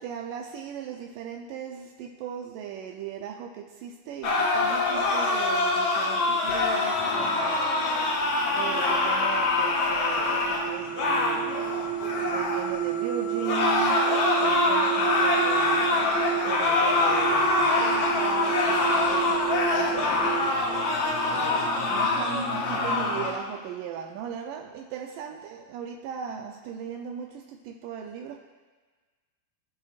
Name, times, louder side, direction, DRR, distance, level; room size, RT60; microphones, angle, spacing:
voice 1, 0.0-8.2 8.5-11.6 12.3-14.1 14.4-20.7 21.3-28.4, right 7 dB, 90° right, 2 dB, 1.9 m, -38 dB
sound 1, 4.2-12.7 13.4-23.4, left 3 dB, 65° left, 1.6 m, -25 dB
sound 2, 6.9-23.3, right 6 dB, 50° left, 2.4 m, -32 dB
24.0 x 8.7 x 2.5 m, 1.4 s
omnidirectional pair, 4.6 m